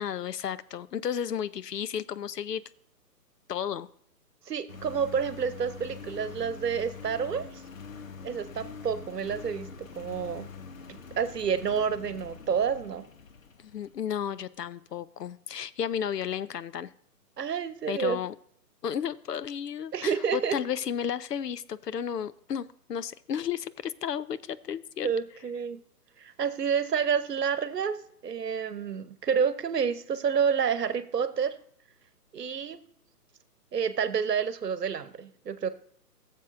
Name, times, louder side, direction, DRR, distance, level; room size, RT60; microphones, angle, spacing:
voice 1, 0.0-2.6 3.5-3.9 13.6-16.9 17.9-18.3 18.8-25.1, left 8 dB, 75° left, 16 dB, 0.7 m, -33 dB
voice 2, 4.5-7.6 8.2-10.5 10.9-13.0 17.4-18.2 19.9-20.6 25.0-25.8 26.2-28.0 28.2-31.5 32.3-32.8 33.7-35.7, right 7 dB, 75° right, 12 dB, 1.0 m, -29 dB
Engine, 4.7-14.1, left 5 dB, 55° left, 1.1 m, -45 dB
15.5 x 7.3 x 2.5 m, 0.64 s
figure-of-eight pair, 145°, 48 cm